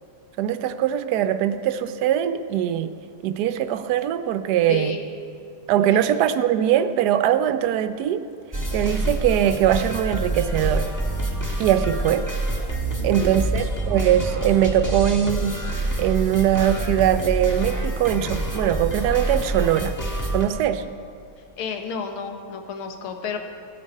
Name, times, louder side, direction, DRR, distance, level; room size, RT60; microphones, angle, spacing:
voice 1, 0.4-2.9 3.2-4.9 5.7-8.2 8.7-10.9 11.6-12.3 13.0-15.6 16.0-19.9 20.3-20.8, right 10 dB, 70° right, 10 dB, 1.0 m, -21 dB
voice 2, 4.7-5.0 5.8-6.0 13.0-13.5 21.6-23.4, left 5 dB, 85° left, 5 dB, 1.9 m, -32 dB
sound 1, 8.5-20.4, right 1 dB, 10° left, 1.1 m, -27 dB
17.0 x 8.6 x 5.4 m, 2.4 s
omnidirectional pair, 2.3 m